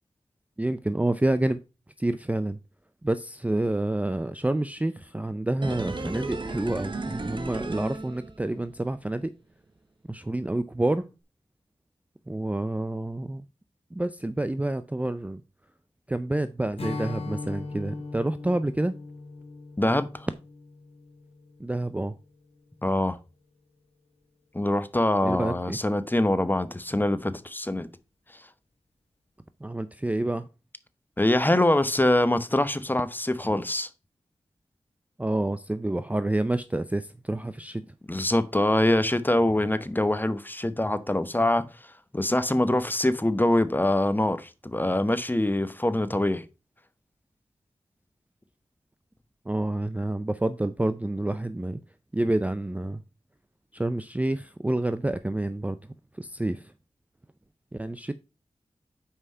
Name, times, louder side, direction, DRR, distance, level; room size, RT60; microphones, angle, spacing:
voice 1, 0.6-1.6 2.0-2.6 3.0-9.3 10.1-11.1 12.3-13.4 13.9-15.4 16.1-18.9 21.6-22.2 25.2-25.8 29.6-30.5 35.2-37.8 49.5-51.8 52.1-53.0 53.7-55.8 56.2-56.6 57.7-58.1, right 1 dB, 10° right, 0.4 m, -28 dB
sound 1, 5.6-8.7 9.0-9.1, right 3 dB, 45° right, 1.1 m, -34 dB
Strum, 16.8-22.2, left 3 dB, 55° left, 1.3 m, -39 dB
voice 2, 19.8-20.3 22.8-23.2 24.5-27.9 31.2-33.9 38.1-46.4, left 1 dB, 15° left, 0.8 m, -24 dB
5.7 x 4.8 x 5.4 m
cardioid pair, 55°, 11 cm